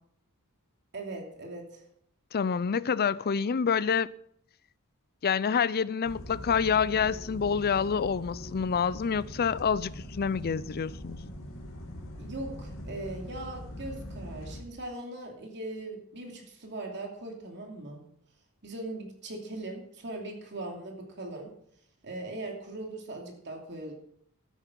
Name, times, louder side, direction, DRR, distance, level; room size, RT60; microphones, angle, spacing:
voice 1, 0.9-1.8 12.2-18.0 18.6-21.5 22.0-23.9, right 2 dB, 55° right, 2.7 m, -40 dB
voice 2, 2.3-4.1 5.2-11.2, left 6 dB, 45° left, 0.5 m, -27 dB
sound 1, 6.0-14.6, equal, 65° left, 2.5 m, -42 dB
12.5 x 9.7 x 6.0 m
head